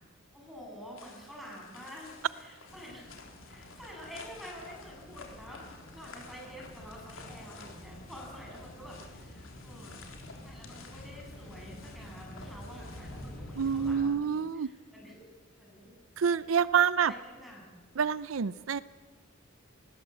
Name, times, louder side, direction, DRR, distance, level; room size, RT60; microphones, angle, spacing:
voice 1, 0.3-3.2 3.4-10.0 10.4-15.3 15.6-16.0 16.6-16.7 17.0-17.7, equal, ahead, -2 dB, 7.5 m, -48 dB
sound 1, 1.0-14.0, left 4 dB, 80° left, 3.7 m, -53 dB
sound 2, 2.7-14.0, left 1 dB, 50° left, 6.5 m, -48 dB
voice 2, 13.6-14.7 16.2-17.1 18.0-18.8, right 7 dB, 80° right, 16 dB, 0.5 m, -27 dB
20.0 x 19.0 x 8.3 m, 1.4 s
head